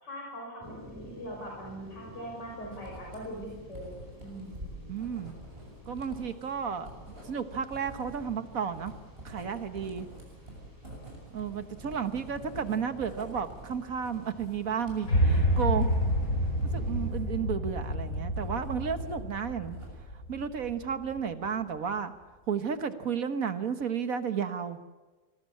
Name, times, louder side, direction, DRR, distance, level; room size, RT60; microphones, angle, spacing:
voice 1, 0.0-3.9 4.2-4.6, equal, 70° left, -2 dB, 6.7 m, -41 dB
sound 1, 0.6-17.1, equal, 10° right, 6.8 m, -50 dB
Writing, 2.6-19.2 19.5-20.2, right 1 dB, 30° right, 7.5 m, -47 dB
voice 2, 4.9-5.3 5.9-6.9 7.2-8.9 9.3-10.1 11.3-15.9 16.7-19.8 20.3-22.1 22.5-24.8, right 7 dB, 50° right, 10 dB, 1.7 m, -32 dB
sound 2, 15.1-21.3, equal, 50° left, 5.1 m, -29 dB
25.5 x 20.5 x 8.6 m, 1.2 s
omnidirectional pair, 2.0 m